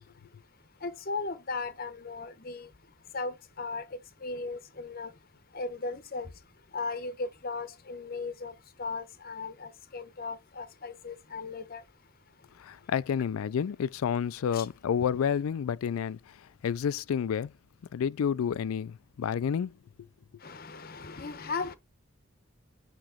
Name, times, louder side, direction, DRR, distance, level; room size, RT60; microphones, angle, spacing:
voice 1, 0.8-2.7 3.1-3.8 4.2-5.1 5.5-6.3 6.7-8.5 8.8-11.8 14.5-14.7 20.4-21.8, left 3 dB, 45° left, 0.8 m, -37 dB
voice 2, 12.6-16.2 16.6-17.5 17.9-19.7, left 7 dB, 85° left, 0.3 m, -29 dB
8.8 x 3.0 x 3.7 m
head